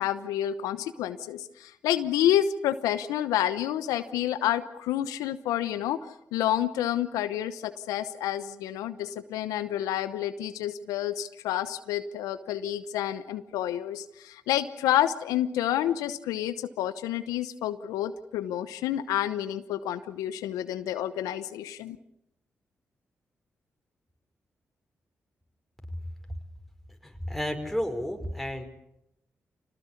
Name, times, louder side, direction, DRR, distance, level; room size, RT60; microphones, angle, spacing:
voice 1, 0.0-6.0 6.3-22.0, left 11 dB, 85° left, 12 dB, 0.9 m, -29 dB
voice 2, 27.0-28.6, equal, ahead, 5 dB, 5.2 m, -32 dB
26.0 x 19.0 x 8.4 m, 0.82 s
hypercardioid pair, 40°, 6 cm